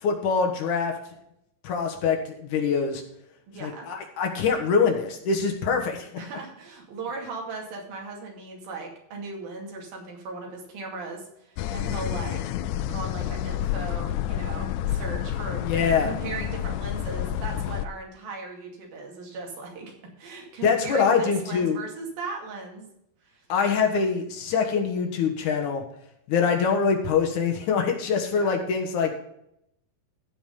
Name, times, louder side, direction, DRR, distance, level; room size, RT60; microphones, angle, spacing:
voice 1, 0.0-0.9 1.6-3.0 3.6-6.1 15.6-16.1 20.6-21.8 23.5-25.8 26.3-29.1, left 5 dB, 65° left, 2 dB, 2.6 m, -24 dB
voice 2, 3.5-3.9 6.2-12.4 12.9-22.9 23.3-23.4 28.3-28.5, right 3 dB, 80° right, 1 dB, 4.2 m, -37 dB
sound 1, 11.6-17.9, left 11 dB, 85° left, 1.7 m, -29 dB
15.0 x 5.1 x 5.4 m, 0.75 s
omnidirectional pair, 4.1 m